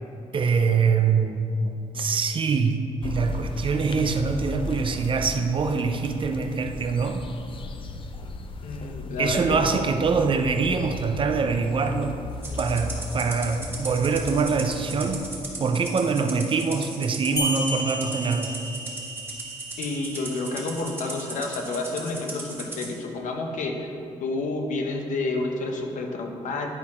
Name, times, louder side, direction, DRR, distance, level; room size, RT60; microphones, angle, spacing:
voice 1, 0.3-7.3 9.2-12.2 12.6-15.2 15.6-18.6, right 5 dB, 40° right, 6 dB, 0.6 m, -24 dB
sound 1, 3.0-15.3, left 2 dB, 40° left, 0.5 m, -36 dB
voice 2, 8.6-9.9 19.8-23.9 24.2-26.8, left 3 dB, 70° left, 2 dB, 0.9 m, -30 dB
Rattle (instrument), 12.4-22.9, right 2 dB, 15° right, 1.5 m, -37 dB
sound 2, 17.4-22.4, equal, 25° left, 1.3 m, -35 dB
10.0 x 4.3 x 4.3 m, 2.6 s
cardioid pair, 100°, 13 cm